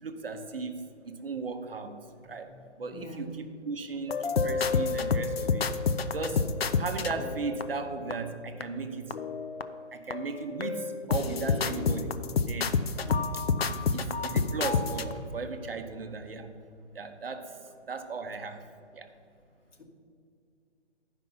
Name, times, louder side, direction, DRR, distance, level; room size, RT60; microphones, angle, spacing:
voice 1, 0.0-5.8 6.1-9.3 9.9-12.8 13.7-16.6 16.9-17.6 17.9-19.1, right 4 dB, 50° right, 7 dB, 0.7 m, -37 dB
voice 2, 2.2-3.3 4.7-4.9 13.0-13.3 19.8-19.9, equal, 75° left, 3 dB, 1.7 m, -46 dB
sound 1, 4.1-8.1 8.6-8.7 9.1-9.8 10.1-15.1, left 5 dB, 55° left, 0.5 m, -29 dB
11.0 x 5.2 x 5.4 m, 2.4 s
hypercardioid pair, 180°, 36 cm